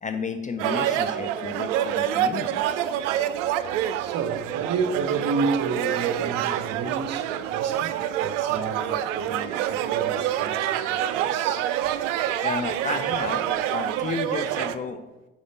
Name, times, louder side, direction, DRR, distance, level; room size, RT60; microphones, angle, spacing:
voice 1, 0.0-2.8 12.4-15.0, left 4 dB, 20° left, 0.4 m, -32 dB
sound 1, 0.6-14.8, right 11 dB, 65° right, 0.5 m, -26 dB
voice 2, 3.6-11.8 12.0-12.1, right 4 dB, 40° right, 0.8 m, -31 dB
8.3 x 4.9 x 4.1 m
figure-of-eight pair, 55°, 40 cm